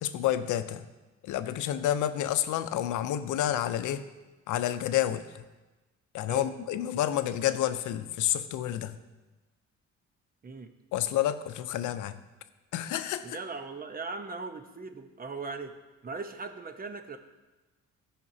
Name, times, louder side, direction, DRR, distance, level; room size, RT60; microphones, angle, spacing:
voice 1, 0.0-0.8 1.2-4.0 4.5-5.2 6.1-9.0 10.9-12.2 12.7-13.4, left 12 dB, 80° left, 12 dB, 0.6 m, -29 dB
voice 2, 13.2-15.8 16.0-17.2, right 3 dB, 30° right, 7 dB, 0.8 m, -39 dB
14.0 x 5.9 x 2.7 m, 1.2 s
cardioid pair, 90°, 30 cm